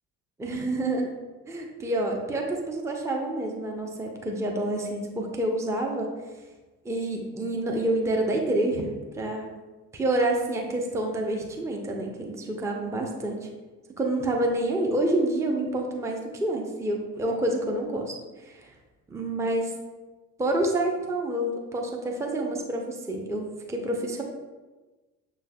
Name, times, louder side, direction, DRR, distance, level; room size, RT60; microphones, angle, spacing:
voice 1, 0.4-1.1 1.5-6.1 6.8-9.5 9.9-13.4 14.0-18.1 18.4-18.7 19.1-19.7 20.4-24.2, right 1 dB, 5° right, 0 dB, 0.6 m, -28 dB
6.7 x 3.3 x 2.2 m, 1.2 s
figure-of-eight pair, 50°, 45 cm